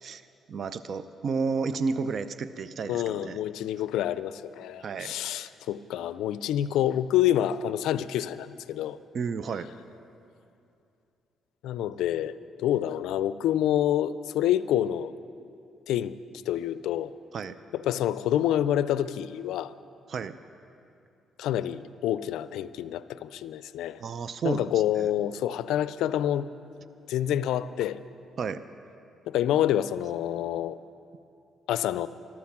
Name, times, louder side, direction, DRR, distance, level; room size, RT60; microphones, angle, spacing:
voice 1, 0.5-3.4 4.8-5.5 9.1-9.7 17.3-17.6 20.1-20.4 24.0-25.1 28.4-28.6, right 5 dB, 55° right, 13 dB, 0.5 m, -32 dB
voice 2, 2.9-9.0 11.6-15.1 15.9-16.1 16.5-17.1 17.7-19.7 21.4-24.0 24.4-26.5 27.1-28.0 29.3-30.8 31.7-32.1, left 11 dB, 85° left, 15 dB, 0.4 m, -27 dB
14.5 x 12.0 x 5.9 m, 2.6 s
cardioid pair, 90°, 0 cm